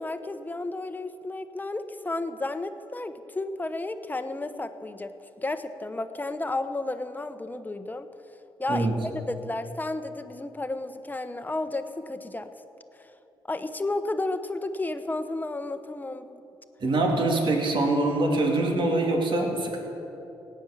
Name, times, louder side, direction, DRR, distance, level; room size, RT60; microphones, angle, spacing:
voice 1, 0.0-8.1 8.6-12.5 12.9-13.1 13.5-16.4, left 2 dB, 20° left, 9 dB, 1.0 m, -32 dB
voice 2, 16.8-19.8, right 2 dB, 60° right, 1 dB, 2.7 m, -24 dB
16.5 x 9.5 x 7.3 m, 3.0 s
cardioid pair, 70°, 10 cm